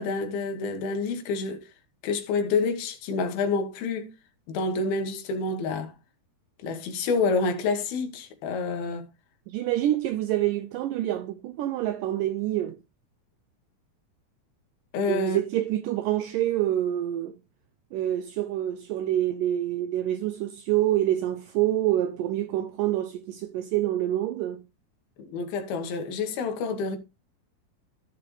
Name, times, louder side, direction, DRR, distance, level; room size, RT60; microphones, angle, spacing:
voice 1, 0.0-1.7 2.0-4.1 4.5-5.9 6.6-9.1 14.9-15.4 25.3-27.0, left 4 dB, 75° left, 3.3 m, -28 dB
voice 2, 9.5-12.8 15.1-17.3 17.9-24.6, right 13 dB, 85° right, 1.9 m, -27 dB
14.5 x 5.8 x 3.1 m
omnidirectional pair, 4.5 m